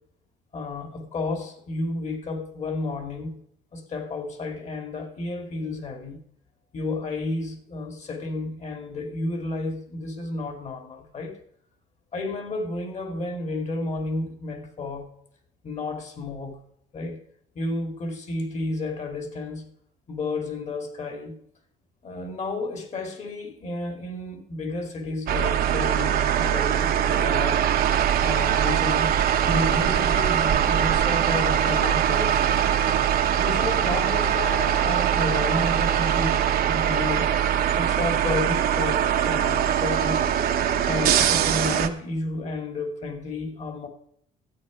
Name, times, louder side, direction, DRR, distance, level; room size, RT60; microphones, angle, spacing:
voice 1, 0.5-3.4 3.7-6.2 6.7-11.4 12.1-15.1 15.6-16.6 16.9-17.2 17.5-19.7 20.1-21.4 22.0-27.6 28.2-29.2 29.4-32.6 33.4-36.4 36.7-37.3 37.7-40.3 40.8-43.9, left 2 dB, 40° left, 2.4 m, -31 dB
sound 1, 25.3-41.9, right 9 dB, 65° right, 1.0 m, -22 dB
13.0 x 8.6 x 5.1 m
cardioid pair, 110°, 17 cm